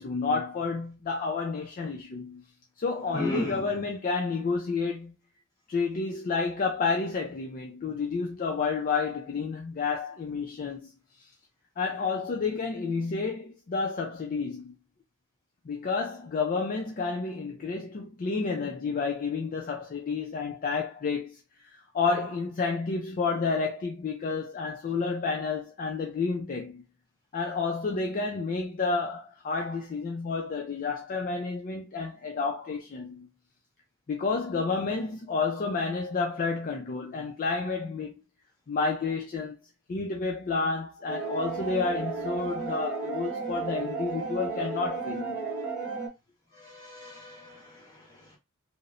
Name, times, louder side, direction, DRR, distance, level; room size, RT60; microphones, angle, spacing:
voice 1, 0.0-2.4 2.8-5.2 5.7-10.9 11.8-14.7 15.7-21.4 21.6-26.8 27.3-33.3 34.1-38.1 38.7-39.6 39.9-45.5, left 4 dB, 40° left, 0.4 m, -30 dB
voice 2, 3.1-3.8 46.5-48.4, equal, 20° left, 1.3 m, -36 dB
sound 1, 41.1-46.1, right 4 dB, 5° right, 1.2 m, -33 dB
2.9 x 2.0 x 2.5 m
head